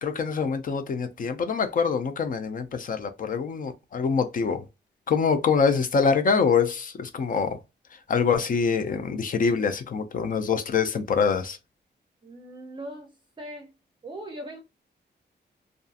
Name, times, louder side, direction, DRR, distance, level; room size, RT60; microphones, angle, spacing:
voice 1, 0.0-4.6 5.1-7.6 8.1-11.6, left 5 dB, 50° left, 0.4 m, -25 dB
voice 2, 12.2-13.7 14.0-14.6, right 1 dB, 25° right, 0.5 m, -40 dB
2.6 x 2.4 x 2.3 m
wide cardioid pair, 160°, 18 cm